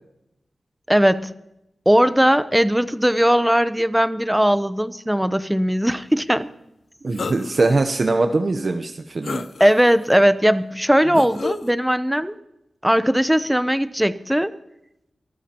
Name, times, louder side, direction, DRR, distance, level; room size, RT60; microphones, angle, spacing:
voice 1, 0.9-1.3 1.9-6.5 9.6-12.3 12.8-14.5, equal, 5° right, 13 dB, 0.7 m, -18 dB
voice 2, 7.0-9.5, right 3 dB, 50° right, 6 dB, 0.8 m, -21 dB
sound 1, 7.1-7.8 8.3-8.4 9.2-10.0 11.1-11.7, left 4 dB, 65° left, 0.6 m, -30 dB
24.5 x 14.0 x 2.9 m, 0.85 s
wide cardioid pair, 125°, 0 cm